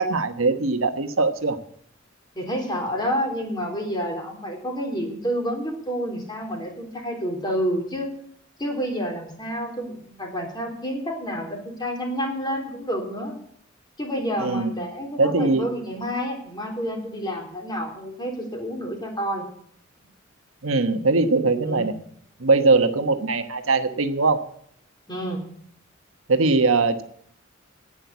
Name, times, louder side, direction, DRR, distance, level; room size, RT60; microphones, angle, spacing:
voice 1, 0.0-1.6 14.4-14.7 15.2-15.7 20.6-21.9 22.4-24.4 26.3-27.0, right 3 dB, 85° right, 8 dB, 1.2 m, -21 dB
voice 2, 2.4-8.1 8.6-13.3 14.0-19.5 21.6-21.9 25.1-25.4, equal, 20° left, 1 dB, 3.5 m, -29 dB
10.5 x 9.0 x 8.1 m, 0.66 s
head